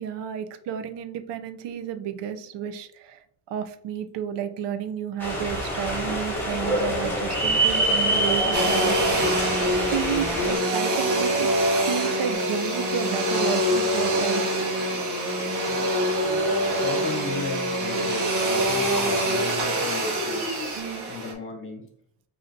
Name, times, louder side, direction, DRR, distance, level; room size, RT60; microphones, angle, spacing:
voice 1, 0.0-3.2 3.5-9.4 9.9-11.5 11.8-14.6 20.8-21.1, right 9 dB, 80° right, 10 dB, 0.5 m, -31 dB
sound 1, 5.2-10.6, right 1 dB, 5° left, 1.3 m, -25 dB
Domestic sounds home sounds, 8.5-21.3, right 1 dB, 60° right, 1.3 m, -25 dB
sound 2, 12.3-20.8, right 2 dB, 20° right, 1.1 m, -43 dB
voice 2, 15.7-20.4 21.1-21.9, left 3 dB, 30° left, 2 dB, 0.8 m, -35 dB
5.5 x 2.7 x 2.6 m, 0.67 s
cardioid pair, 175°, 42 cm